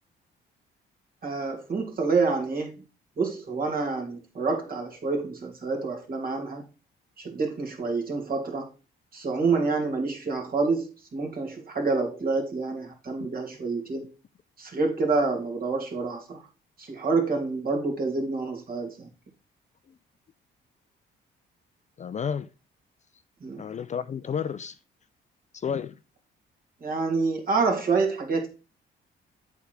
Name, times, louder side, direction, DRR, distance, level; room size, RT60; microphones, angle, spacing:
voice 1, 1.2-2.7 3.2-6.7 7.2-8.7 9.1-14.1 14.6-16.4 16.8-19.1 23.4-23.6 26.8-28.5, right 4 dB, 45° right, 2.6 m, -27 dB
voice 2, 22.0-22.5 23.6-24.8 25.5-25.9, left 7 dB, 35° left, 0.4 m, -31 dB
8.0 x 3.6 x 6.1 m
cardioid pair, 90°, 20 cm